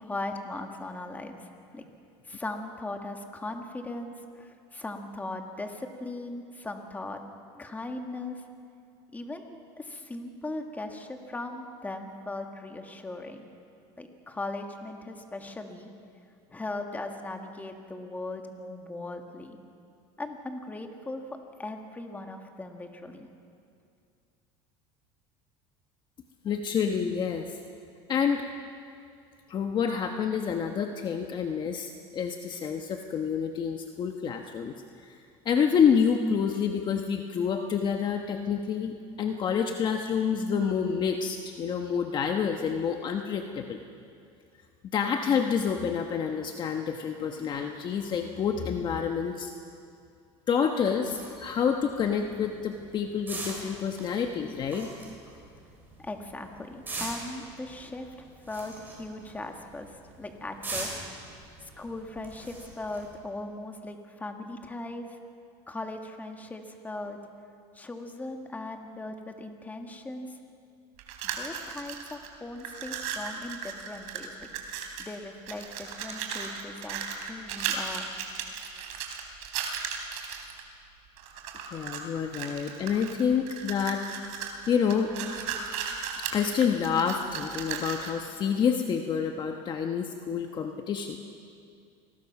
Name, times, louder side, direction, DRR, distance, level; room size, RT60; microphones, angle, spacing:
voice 1, 0.0-1.5 1.7-1.8 2.3-7.2 7.5-8.4 9.1-13.5 14.0-15.9 16.5-19.6 20.2-21.2 21.6-23.3 56.0-61.0 61.2-61.3 61.6-65.2 65.7-67.2 67.7-70.4 71.2-74.5 75.0-77.0 77.3-78.1, left 2 dB, 10° left, 4 dB, 2.0 m, -39 dB
voice 2, 26.4-27.6 28.1-28.4 29.5-34.7 35.0-35.2 35.4-43.8 44.9-49.5 50.5-54.9 81.7-84.3 84.7-85.1 86.2-91.2, left 7 dB, 35° left, 5 dB, 1.2 m, -28 dB
sound 1, 51.0-63.2, right 2 dB, 15° right, 6.9 m, -42 dB
sound 2, 71.0-72.3 72.6-75.1 75.5-80.6 81.2-82.0 82.3-88.2, right 7 dB, 70° right, 3.5 m, -36 dB
28.0 x 20.5 x 6.0 m, 2.4 s
cardioid pair, 130°, 13 cm